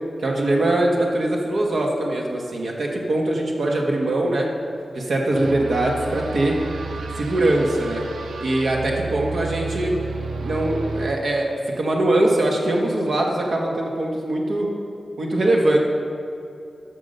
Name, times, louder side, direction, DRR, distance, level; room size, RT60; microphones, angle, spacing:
voice 1, 0.2-4.5 4.9-6.6 7.2-8.0 8.4-9.9 10.4-11.5 11.8-14.7 15.2-15.8, right 1 dB, 65° right, -1 dB, 1.5 m, -22 dB
reverse nothing, 5.3-11.1, right 4 dB, 85° right, 0.7 m, -32 dB
9.9 x 6.7 x 6.6 m, 2.7 s
wide cardioid pair, 140°, 0 cm